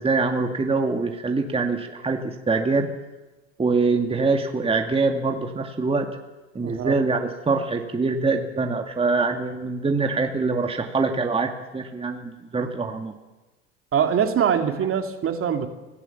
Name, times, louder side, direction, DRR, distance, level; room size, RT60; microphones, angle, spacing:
voice 1, 0.0-2.9 3.6-6.1 6.5-13.1, right 3 dB, 15° right, 3 dB, 2.3 m, -24 dB
voice 2, 6.6-7.0 13.9-15.7, right 8 dB, 40° right, 6 dB, 2.7 m, -23 dB
25.5 x 18.0 x 7.2 m, 1.2 s
hypercardioid pair, 85°, 35 cm